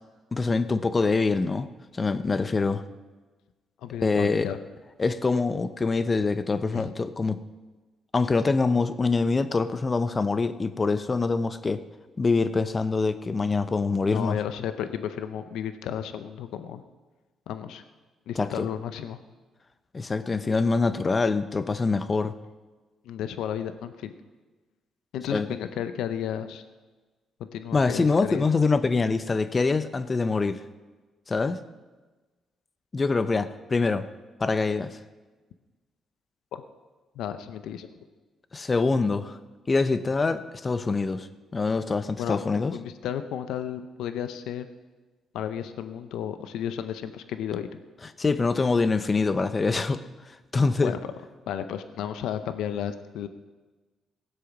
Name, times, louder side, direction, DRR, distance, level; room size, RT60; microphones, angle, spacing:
voice 1, 0.3-1.7 1.9-2.8 4.0-4.5 5.0-7.4 8.1-11.8 12.2-14.4 18.4-18.7 19.9-22.3 25.3-25.5 27.7-30.6 31.3-31.6 32.9-34.1 34.4-35.0 38.5-39.4 39.7-41.3 41.5-42.7 48.2-50.0 50.5-50.9, left 4 dB, 30° left, 12 dB, 0.8 m, -24 dB
voice 2, 3.8-4.6 6.7-6.9 14.1-16.8 17.5-17.8 18.3-19.2 23.0-24.1 25.1-26.6 27.4-28.4 36.5-36.6 37.1-38.0 42.2-44.7 45.3-47.7 50.8-51.0 51.5-53.3, left 9 dB, 85° left, 10 dB, 0.7 m, -33 dB
17.5 x 7.8 x 6.0 m, 1.3 s
cardioid pair, 90°, 0 cm